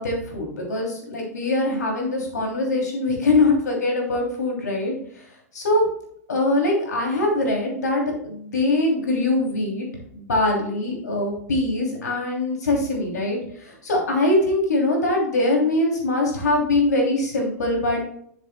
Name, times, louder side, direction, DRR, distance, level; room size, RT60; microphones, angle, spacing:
voice 1, 0.0-5.2 5.5-5.8 6.3-9.9 10.1-18.0, left 2 dB, 85° left, 0 dB, 3.0 m, -22 dB
10.5 x 7.3 x 2.3 m, 0.67 s
hypercardioid pair, 110°, 9 cm